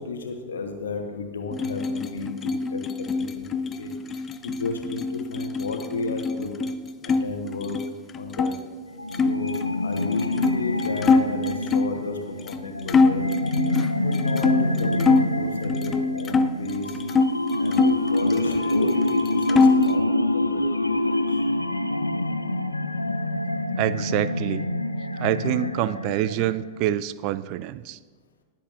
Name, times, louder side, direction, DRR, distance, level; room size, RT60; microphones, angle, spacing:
voice 1, 0.0-6.7 7.0-7.8 8.1-8.5 9.2-9.5 9.8-12.2 12.4-13.2 14.0-17.0 17.5-21.5, left 4 dB, 65° left, 4 dB, 1.2 m, -33 dB
sound 1, 1.5-7.2 7.5-8.5 9.1-12.0 12.5-12.6 12.9-15.3 15.7-17.3 17.7-18.8 19.1-20.0, left 4 dB, 25° left, 0.5 m, -24 dB
sound 2, 8.9-26.9, left 1 dB, 85° left, 0.3 m, -26 dB
voice 2, 23.8-24.7 25.2-28.0, right 13 dB, 45° right, 17 dB, 0.3 m, -26 dB
20.0 x 7.6 x 2.6 m, 1.5 s
figure-of-eight pair, 90°, 0 cm